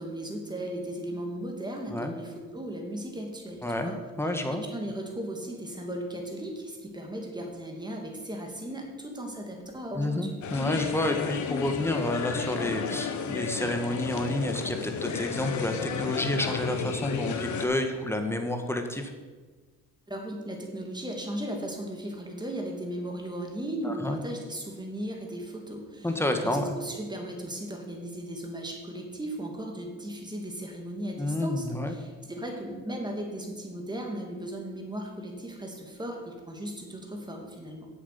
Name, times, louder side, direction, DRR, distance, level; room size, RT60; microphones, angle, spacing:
voice 1, 0.0-4.0 4.5-10.4 20.1-37.9, right 1 dB, 15° right, 1 dB, 2.5 m, -36 dB
voice 2, 3.6-4.6 9.9-19.1 23.8-24.2 26.0-26.7 31.2-31.9, left 1 dB, 10° left, 5 dB, 1.5 m, -30 dB
sound 1, 10.4-17.7, left 6 dB, 75° left, 1.2 m, -32 dB
7.9 x 7.6 x 6.9 m, 1.4 s
cardioid pair, 90°, 30 cm